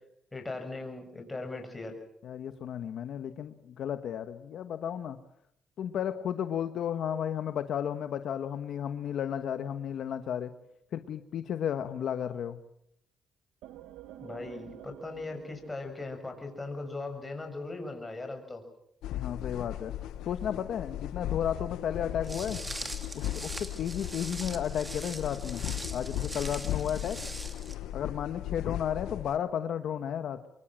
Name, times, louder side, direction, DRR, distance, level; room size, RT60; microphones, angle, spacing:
voice 1, 0.3-2.0 14.2-18.6, left 2 dB, 20° left, 5 dB, 6.4 m, -39 dB
voice 2, 2.2-5.2 5.8-10.5 10.9-12.6 19.1-19.9 20.2-22.6 23.1-27.2 27.9-30.4, left 9 dB, 70° left, 9 dB, 1.3 m, -33 dB
sound 1, 13.6-17.2, right 12 dB, 90° right, 1.3 m, -50 dB
sound 2, 19.0-29.4, left 12 dB, 90° left, 1.0 m, -37 dB
Walk footsteps, 22.2-27.7, right 2 dB, 15° right, 2.8 m, -42 dB
25.0 x 23.5 x 7.6 m, 0.75 s
cardioid pair, 90°, 0 cm